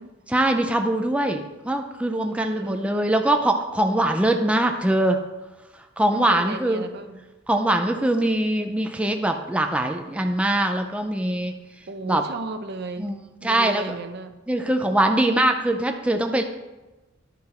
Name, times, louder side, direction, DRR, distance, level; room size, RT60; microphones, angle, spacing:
voice 1, 0.3-5.2 6.0-6.9 7.5-11.5 12.0-12.2 13.0-13.1 13.4-13.9 14.5-16.4, right 1 dB, 5° right, 4 dB, 0.5 m, -22 dB
voice 2, 2.2-3.2 6.1-7.3 11.9-13.1 13.4-14.4, right 3 dB, 60° right, 8 dB, 0.7 m, -35 dB
11.0 x 5.8 x 4.3 m, 1.1 s
head